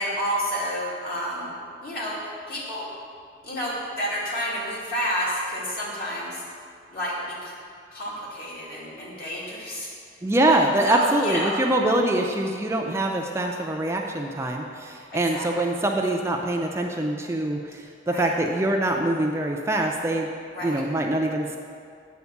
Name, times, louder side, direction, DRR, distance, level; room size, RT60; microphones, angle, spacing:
voice 1, 0.0-1.5 1.8-2.2 2.5-2.9 3.4-6.4 6.9-7.5 7.9-9.9 10.5-10.6 10.9-11.6 15.1-15.7 18.1-18.3 20.5-20.8, equal, 55° left, -6 dB, 2.3 m, -30 dB
voice 2, 10.2-20.3 20.6-21.6, right 1 dB, 15° right, 1 dB, 0.4 m, -24 dB
8.4 x 4.3 x 7.0 m, 2.3 s
head